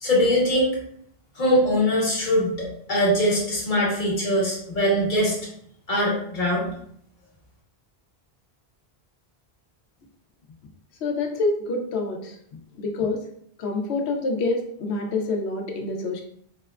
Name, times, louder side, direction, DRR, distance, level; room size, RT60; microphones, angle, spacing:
voice 1, 0.0-0.8 1.4-5.3 5.9-6.7, equal, 50° left, -3 dB, 1.1 m, -22 dB
voice 2, 11.0-12.4 12.8-13.2 13.6-16.2, left 3 dB, 85° left, 2 dB, 0.9 m, -26 dB
4.4 x 2.1 x 2.3 m, 0.67 s
omnidirectional pair, 1.1 m